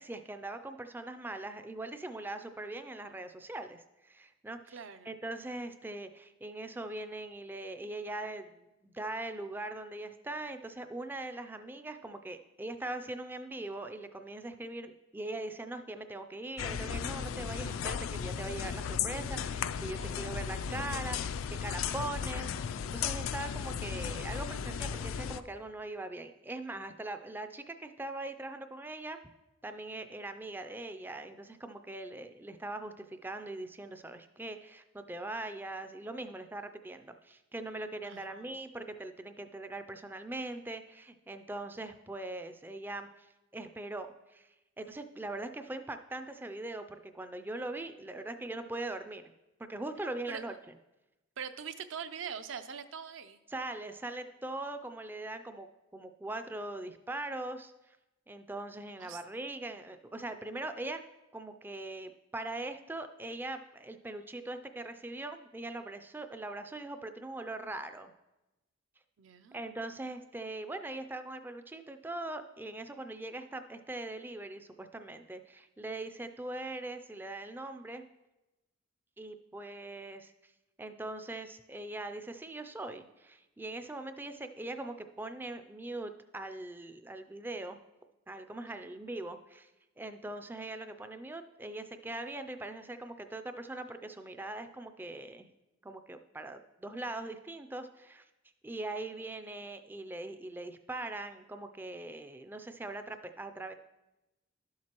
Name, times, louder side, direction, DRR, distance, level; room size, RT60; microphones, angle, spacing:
voice 1, 0.0-29.2 29.6-49.3 49.7-50.5 53.5-58.0 58.3-61.0 61.3-68.1 69.5-78.0 79.2-80.5 80.8-87.8 88.3-89.7 90.0-95.5 95.8-98.3 98.6-103.7, right 2 dB, 10° right, 8 dB, 0.3 m, -41 dB
voice 2, 4.7-5.1 19.9-20.7 38.0-38.6 50.3-50.4 51.4-53.4 59.0-59.2 69.2-69.6 88.7-88.8, right 7 dB, 70° right, 10 dB, 0.5 m, -43 dB
sound 1, 16.6-25.4, left 7 dB, 75° left, 0.3 m, -35 dB
11.5 x 7.4 x 2.9 m, 1.0 s
head